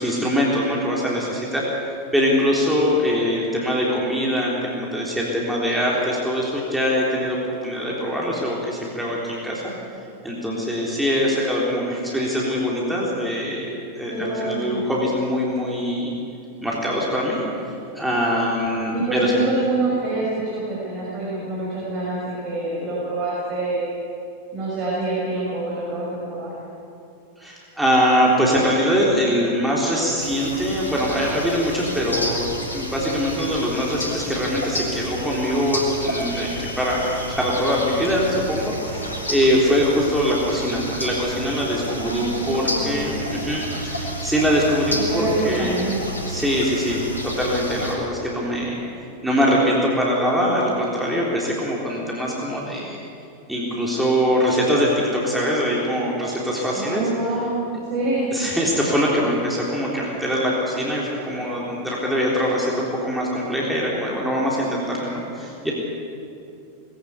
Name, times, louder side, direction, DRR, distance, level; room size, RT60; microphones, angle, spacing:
voice 1, 0.0-1.6 2.1-7.4 7.6-9.7 10.2-16.1 16.6-17.4 17.9-19.3 27.4-45.8 46.3-48.8 49.2-53.0 53.5-57.1 58.3-65.7, equal, 5° right, -5 dB, 3.6 m, -23 dB
voice 2, 14.1-14.8 18.9-23.9 24.5-26.5 41.9-43.0 44.9-46.0 56.7-58.4, right 2 dB, 30° right, -6 dB, 6.2 m, -26 dB
sound 1, 30.2-47.9, equal, 80° left, 3.4 m, -30 dB
20.5 x 15.5 x 8.3 m, 2.6 s
figure-of-eight pair, 90°, 0 cm